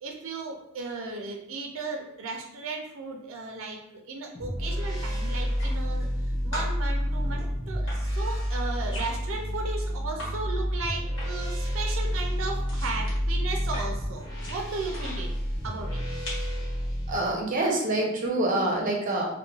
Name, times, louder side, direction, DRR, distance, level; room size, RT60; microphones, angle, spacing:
voice 1, 0.0-3.8 4.1-15.3 15.6-16.0, right 3 dB, 90° right, 1 dB, 0.4 m, -35 dB
sound 1, 4.3-17.2, equal, 20° left, 0.7 m, -29 dB
sound 2, 5.4-6.2 6.5-10.3 10.6-11.5 11.8-15.2 15.9-16.6, equal, 65° left, 1.1 m, -41 dB
voice 2, 17.1-19.3, right 2 dB, 45° right, 0 dB, 0.6 m, -26 dB
3.0 x 2.1 x 2.3 m, 0.83 s
head